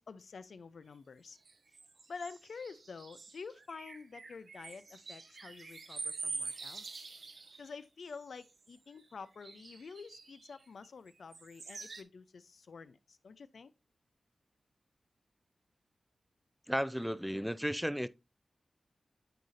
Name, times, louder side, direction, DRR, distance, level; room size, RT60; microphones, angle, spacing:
voice 1, 0.0-1.4 2.1-7.1 7.6-13.7, left 5 dB, 85° left, 0.4 m, -49 dB
sound 1, 1.5-7.7 8.1-8.7 9.4-10.9 11.3-12.0, right 3 dB, 65° right, 0.7 m, -46 dB
voice 2, 16.7-18.1, equal, ahead, 0.3 m, -34 dB
9.2 x 4.1 x 2.5 m
wide cardioid pair, 75°, 0 cm